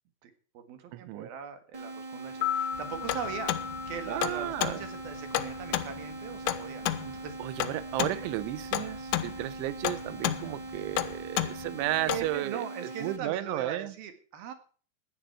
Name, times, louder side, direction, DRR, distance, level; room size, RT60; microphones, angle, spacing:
voice 1, 0.2-3.5 3.9-7.4 8.1-8.3 12.1-14.5, right 7 dB, 60° right, 3.3 m, -40 dB
voice 2, 0.9-1.3 4.1-4.8 7.4-12.6 13.0-13.9, right 16 dB, 90° right, 3.2 m, -33 dB
sound 1, 1.7-13.2, right 2 dB, 30° right, 0.6 m, -42 dB
sound 2, 2.3-6.4 6.7-6.8, left 10 dB, 60° left, 3.6 m, -37 dB
sound 3, 2.8-12.4, left 14 dB, 75° left, 3.0 m, -33 dB
16.0 x 11.5 x 4.6 m
omnidirectional pair, 5.3 m